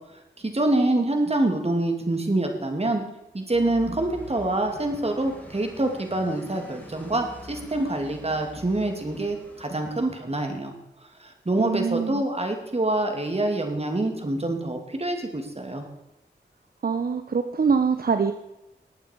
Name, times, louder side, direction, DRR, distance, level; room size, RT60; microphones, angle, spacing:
voice 1, 0.4-3.0 3.3-10.7 11.2-15.9, right 2 dB, 35° right, 4 dB, 2.9 m, -26 dB
sound 1, 3.5-10.0, left 1 dB, 10° left, 3.7 m, -45 dB
voice 2, 11.6-12.2 16.8-18.3, right 5 dB, 55° right, 8 dB, 0.9 m, -24 dB
19.5 x 8.8 x 4.8 m, 0.93 s
cardioid pair, 55°, 18 cm